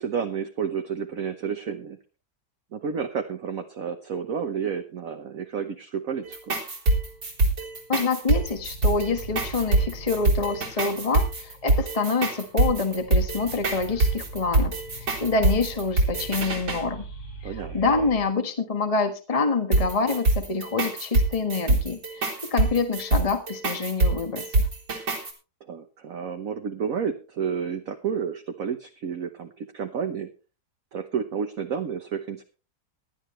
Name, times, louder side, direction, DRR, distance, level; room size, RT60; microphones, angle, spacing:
voice 1, 0.0-2.0 2.7-6.6 17.4-17.8 25.6-30.3 30.9-32.4, right 7 dB, 55° right, 5 dB, 1.3 m, -31 dB
sound 1, 6.3-16.8 19.7-25.3, right 2 dB, 85° right, 4.5 m, -24 dB
sound 2, 7.1-7.8 8.2-18.2, right 3 dB, 60° left, 3.0 m, -42 dB
voice 2, 7.9-17.0 17.4-24.7, left 4 dB, 20° left, 6 dB, 1.4 m, -27 dB
18.0 x 11.5 x 3.2 m, 0.33 s
omnidirectional pair, 1.9 m